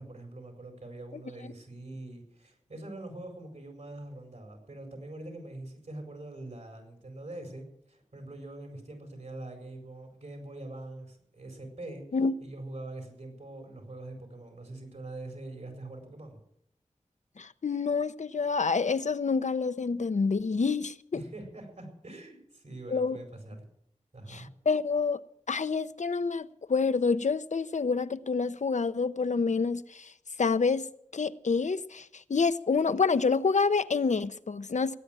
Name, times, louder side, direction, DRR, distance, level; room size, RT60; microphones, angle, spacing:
voice 1, 0.0-12.0 12.4-16.4 21.1-23.7 24.1-24.5, right 2 dB, 75° right, 4.6 m, -43 dB
voice 2, 17.4-21.2 22.9-23.2 24.3-25.2 25.5-30.1 30.4-30.9 31.1-35.0, left 4 dB, 75° left, 0.7 m, -28 dB
18.0 x 9.0 x 7.5 m
wide cardioid pair, 45°, 12 cm